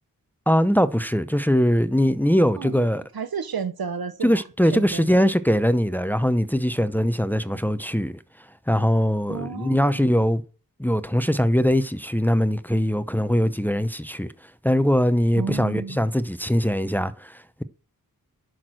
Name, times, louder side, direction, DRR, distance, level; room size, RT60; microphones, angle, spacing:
voice 1, 0.5-3.0 4.2-8.2 8.7-10.4 10.8-14.3 14.6-17.6, equal, 5° left, 0.7 m, -21 dB
voice 2, 2.6-2.9 3.1-4.4 4.7-5.4 9.3-10.3 15.4-16.0, right 6 dB, 80° right, 0.9 m, -32 dB
10.5 x 6.3 x 6.3 m
wide cardioid pair, 50°, 36 cm